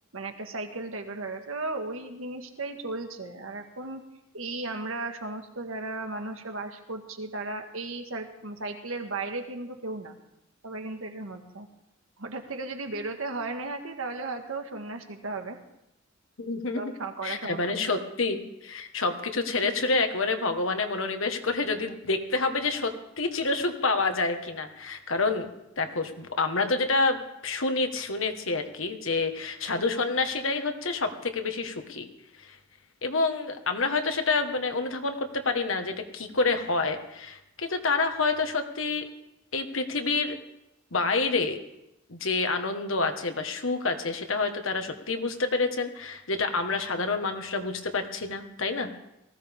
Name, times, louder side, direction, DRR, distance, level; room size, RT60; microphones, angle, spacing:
voice 1, 0.1-4.0 4.3-10.1 10.6-11.7 12.2-15.6 16.7-17.9, right 3 dB, 85° right, 5 dB, 1.8 m, -35 dB
voice 2, 16.4-16.9 17.2-25.5 25.8-32.1 32.4-32.5 33.0-39.0 39.5-40.4 40.9-41.6 42.1-48.9, left 3 dB, 70° left, 6 dB, 1.6 m, -28 dB
19.0 x 16.0 x 3.7 m, 0.87 s
head